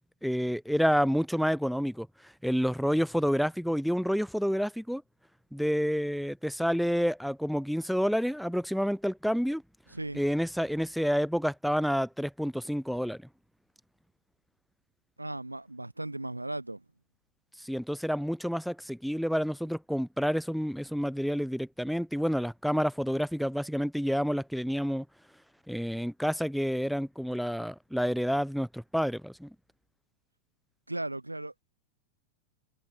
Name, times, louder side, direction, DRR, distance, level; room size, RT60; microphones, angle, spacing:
voice 1, 0.2-2.1 2.4-5.0 5.5-9.6 10.1-13.2 17.7-25.0 25.7-29.5, equal, ahead, 1.0 m, -29 dB
voice 2, 9.9-10.2 15.2-16.8 30.9-31.6, right 2 dB, 85° right, 3.0 m, -36 dB
figure-of-eight pair, 90°, 0 cm